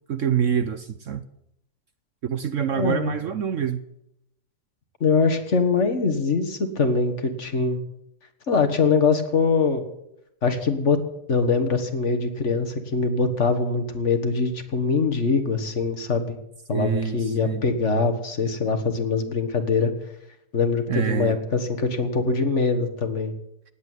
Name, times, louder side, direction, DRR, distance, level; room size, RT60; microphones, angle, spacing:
voice 1, 0.1-1.2 2.2-3.8 16.7-17.6 20.9-21.3, right 8 dB, 60° right, 11 dB, 1.0 m, -26 dB
voice 2, 2.8-3.1 5.0-7.8 8.5-9.8 10.4-11.0 11.3-16.4 16.7-19.9 20.5-23.3, left 4 dB, 45° left, 7 dB, 1.8 m, -23 dB
18.0 x 8.5 x 9.2 m, 0.81 s
omnidirectional pair, 1.7 m